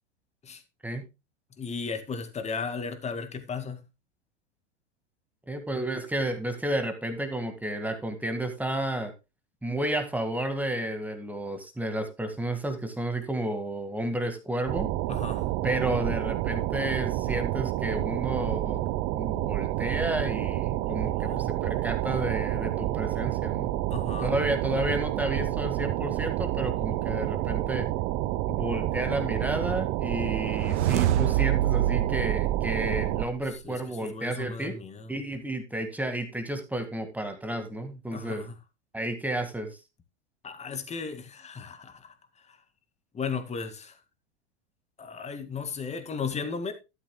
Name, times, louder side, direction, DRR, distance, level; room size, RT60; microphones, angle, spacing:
voice 1, 1.6-3.8 15.1-15.4 21.1-21.4 23.9-24.3 33.6-33.8 34.1-35.1 38.1-38.5 40.4-42.1 43.1-43.9 45.0-46.7, left 5 dB, 20° left, 2.0 m, -35 dB
voice 2, 5.5-9.1 9.6-14.9 15.6-18.8 19.1-23.7 24.2-27.9 28.5-34.8 35.1-38.5 38.9-39.8, right 1 dB, 5° right, 1.8 m, -31 dB
sound 1, 14.7-33.3, right 15 dB, 40° right, 0.8 m, -29 dB
sound 2, 30.3-33.6, right 13 dB, 75° right, 0.8 m, -27 dB
13.0 x 10.5 x 2.2 m
hypercardioid pair, 120°, 35 cm